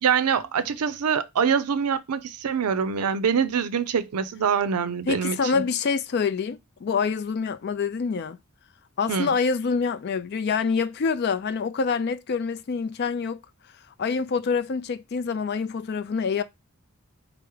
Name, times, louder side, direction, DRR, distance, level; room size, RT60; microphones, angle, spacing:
voice 1, 0.0-5.6 9.1-9.3, right 7 dB, 90° right, 0.5 m, -24 dB
voice 2, 5.1-8.4 9.0-13.4 14.0-16.4, left 5 dB, 45° left, 0.3 m, -26 dB
4.6 x 2.0 x 4.6 m
head